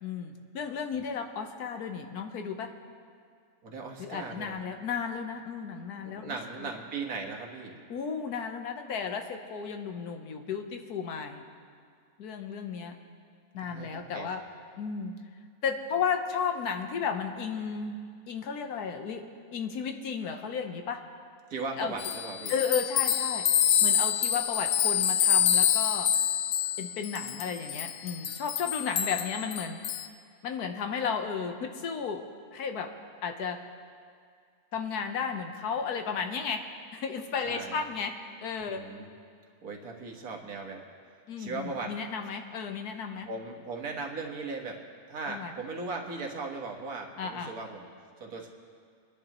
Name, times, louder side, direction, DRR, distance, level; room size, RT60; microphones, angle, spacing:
voice 1, 0.0-2.7 4.0-6.7 7.9-11.4 12.2-12.9 13.5-14.4 14.8-15.1 15.6-18.0 18.3-19.2 19.5-21.0 21.8-21.9 22.5-23.5 23.8-26.1 26.8-29.8 30.4-32.2 32.5-32.9 33.2-33.6 34.7-36.6 36.9-38.1 38.4-38.8 41.3-43.3 45.3-45.5 47.2-47.5, left 6 dB, 85° left, 5 dB, 1.5 m, -33 dB
voice 2, 3.6-4.6 6.2-7.8 13.6-14.3 21.5-22.5 37.4-37.8 38.7-39.1 39.6-40.8 41.4-41.9 43.3-44.8 45.1-47.9 48.2-48.5, right 3 dB, 75° right, 1 dB, 1.9 m, -38 dB
sound 1, 22.0-30.1, left 9 dB, 65° left, 0.8 m, -27 dB
25.5 x 10.5 x 3.0 m, 2.2 s
omnidirectional pair, 1.6 m